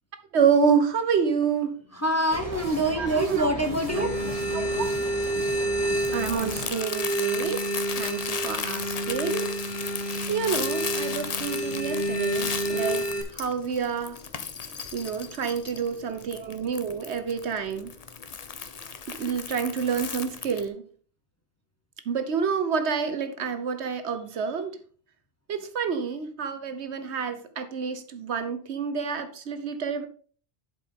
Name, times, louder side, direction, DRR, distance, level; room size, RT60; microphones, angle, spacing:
voice 1, 0.3-1.7 3.0-3.5 4.0-4.1 4.5-4.9 6.1-7.6 8.0-9.5 10.3-14.2 14.9-17.9 19.2-20.8 22.1-24.8 25.5-30.0, right 6 dB, 70° right, 10 dB, 1.1 m, -28 dB
voice 2, 1.9-5.0 5.3-5.6 14.7-14.8, right 1 dB, 15° left, 4 dB, 1.1 m, -27 dB
sound 1, 2.3-6.7, equal, 30° right, 2.0 m, -37 dB
sound 2, 3.9-13.2, right 1 dB, 75° left, 2.1 m, -29 dB
Crumpling crinkling, 4.3-20.7, left 6 dB, 40° left, 0.7 m, -36 dB
11.0 x 5.1 x 3.6 m, 0.42 s
omnidirectional pair, 1.2 m